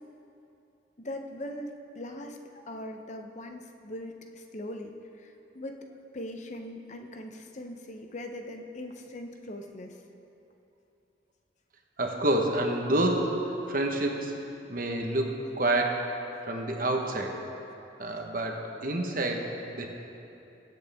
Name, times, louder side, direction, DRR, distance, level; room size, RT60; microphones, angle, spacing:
voice 1, 1.0-2.4 2.7-5.8 6.1-10.0, left 1 dB, 40° left, 4 dB, 0.7 m, -40 dB
voice 2, 12.0-14.3 14.7-16.2 16.5-17.4 18.0-19.9, right 1 dB, 45° right, 2 dB, 1.1 m, -28 dB
21.5 x 8.1 x 3.5 m, 2.8 s
head